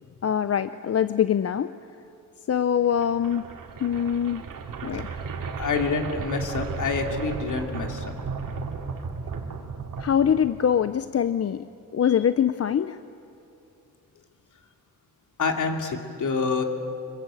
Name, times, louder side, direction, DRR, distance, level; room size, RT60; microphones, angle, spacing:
voice 1, 0.2-1.7 2.5-3.4 3.8-4.4 4.8-5.2 10.0-11.6 11.9-13.0, left 8 dB, 45° left, 13 dB, 0.6 m, -23 dB
sound 1, 2.8-10.9, right 5 dB, 75° right, 2.6 m, -35 dB
voice 2, 5.6-8.0 15.4-16.6, left 4 dB, 65° left, 4 dB, 2.7 m, -27 dB
25.5 x 22.0 x 8.9 m, 2.9 s
wide cardioid pair, 115°, 33 cm